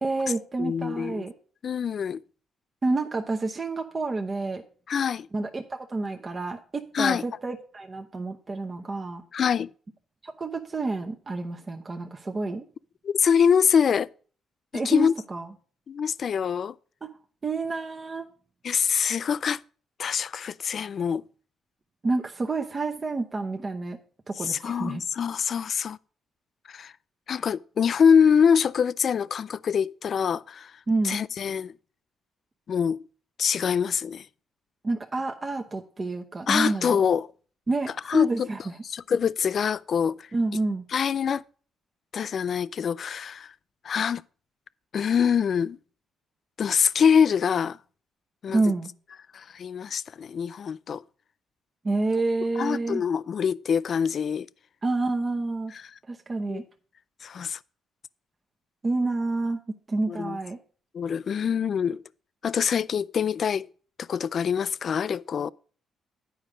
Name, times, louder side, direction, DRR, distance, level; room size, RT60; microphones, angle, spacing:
voice 1, 0.0-1.3 2.8-4.6 5.3-9.2 10.2-12.7 14.7-15.5 17.0-17.1 17.4-18.3 22.0-24.0 24.3-25.0 30.9-31.2 34.8-37.0 37.7-38.6 40.3-40.8 48.5-48.9 51.8-53.0 54.8-55.7 56.1-56.6 58.8-60.6, right 3 dB, 30° right, 0.8 m, -29 dB
voice 2, 0.6-1.3 1.6-2.2 4.9-5.3 6.9-7.2 9.3-9.7 13.0-14.1 14.7-15.1 15.9-16.7 18.6-19.6 20.0-21.2 24.4-26.0 26.7-26.9 27.3-30.7 31.0-31.7 32.7-33.0 33.4-34.3 36.5-37.3 38.1-38.5 38.8-40.3 40.9-41.4 42.1-43.5 43.8-44.2 44.9-45.8 46.6-47.8 48.4-48.6 49.3-51.0 52.6-54.5 55.7-55.9 56.5-56.6 57.2-57.6 60.1-60.4 60.9-62.0 62.4-63.7 64.0-65.5, left 7 dB, 55° left, 0.3 m, -24 dB
9.3 x 5.0 x 6.4 m
cardioid pair, 90°, 0 cm